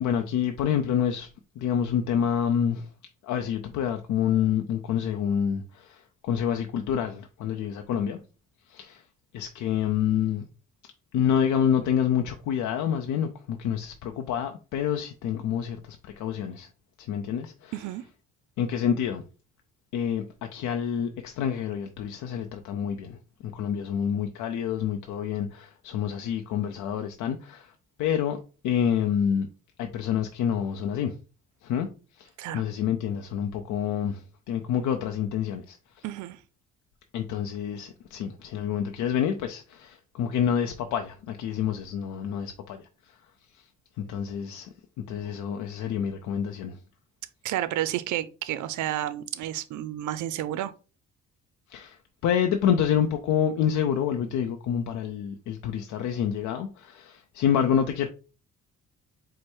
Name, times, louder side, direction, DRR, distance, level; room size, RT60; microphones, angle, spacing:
voice 1, 0.0-1.3 1.6-2.9 3.2-8.2 8.7-9.0 9.3-10.4 11.1-16.7 17.0-17.7 18.6-19.2 19.9-27.7 28.0-28.4 28.6-29.5 29.8-31.2 31.6-31.9 32.2-36.0 37.1-43.2 43.5-43.6 44.0-44.7 45.1-46.8 51.7-52.0 52.2-58.1, left 8 dB, 80° left, 0.6 m, -28 dB
voice 2, 17.7-18.0 32.4-32.6 36.0-36.4 47.4-50.7, right 13 dB, 75° right, 0.5 m, -31 dB
4.7 x 2.1 x 4.3 m
cardioid pair, 90°, 30 cm